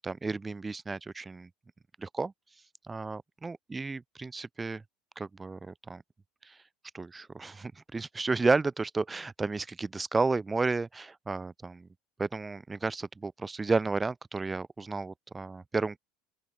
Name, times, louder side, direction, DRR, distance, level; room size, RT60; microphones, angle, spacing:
voice 1, 0.0-1.5 2.0-2.3 2.9-4.8 5.2-6.0 6.5-6.6 6.9-11.9 12.2-16.0, right 3 dB, 20° right, 4.8 m, -32 dB
open air
hypercardioid pair, 80°, 0 cm